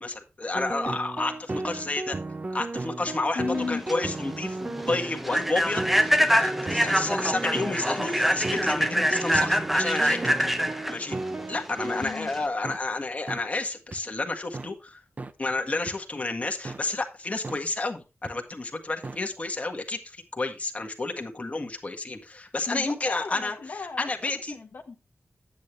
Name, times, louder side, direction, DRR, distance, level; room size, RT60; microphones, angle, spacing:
voice 1, 0.0-2.2 2.5-10.2 10.9-11.2 11.5-15.0 15.4-23.6 24.0-24.6, left 2 dB, 35° left, 3 dB, 1.6 m, -31 dB
sound 1, 0.5-12.1 12.6-12.8 13.3-13.4 13.9-14.0 14.5-14.7 15.2-15.3 15.9-16.0 16.6-16.8 17.4-17.6 18.2-18.3 19.0-19.2, right 2 dB, 40° right, 0.7 m, -35 dB
voice 2, 3.3-3.8 11.8-12.3 22.7-25.0, left 4 dB, 70° left, 2 dB, 1.2 m, -35 dB
Human voice / Train, 3.6-12.5, equal, 5° right, 0.8 m, -25 dB
10.5 x 8.6 x 3.2 m, 0.29 s
wide cardioid pair, 110°, 4 cm